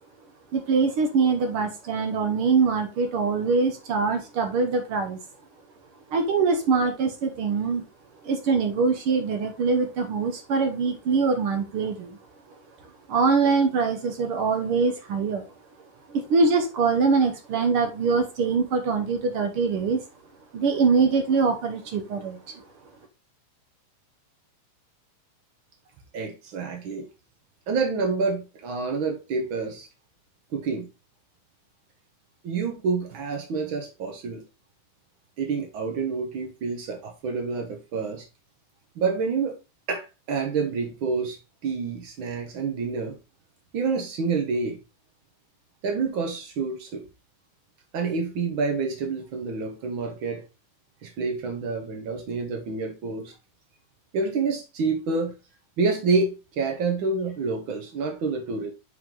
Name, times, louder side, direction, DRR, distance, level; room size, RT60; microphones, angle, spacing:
voice 1, 0.5-5.2 6.1-7.8 8.2-12.2 13.1-15.4 16.1-20.0 20.5-22.4, right 4 dB, 65° right, 1.4 m, -23 dB
voice 2, 26.1-27.1 27.7-29.9 30.5-30.9 32.4-34.4 35.4-38.3 38.9-39.6 39.9-43.2 43.7-44.8 45.8-47.0 47.9-50.4 51.0-53.3 54.1-55.3 55.8-58.7, right 4 dB, 85° right, 1.1 m, -28 dB
7.3 x 5.0 x 3.7 m
omnidirectional pair, 3.8 m